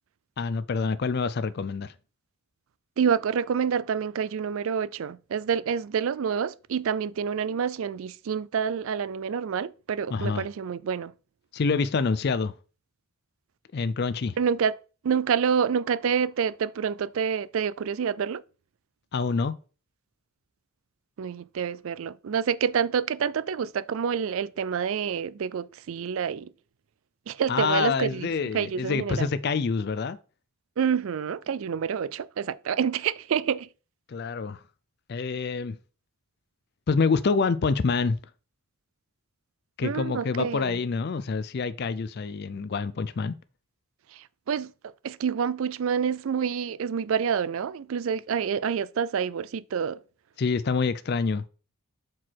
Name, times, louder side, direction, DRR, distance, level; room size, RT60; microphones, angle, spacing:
voice 1, 0.4-1.9 10.1-10.5 11.5-12.5 13.7-14.4 19.1-19.5 27.5-30.2 34.1-34.6 35.1-35.8 36.9-38.2 39.8-43.4 50.4-51.4, left 4 dB, 50° left, 0.4 m, -26 dB
voice 2, 3.0-11.1 14.4-14.7 15.0-18.4 21.2-26.5 27.3-28.3 28.5-29.3 30.8-33.7 39.8-40.8 44.1-50.0, right 7 dB, 65° right, 0.4 m, -28 dB
6.1 x 4.5 x 4.6 m
head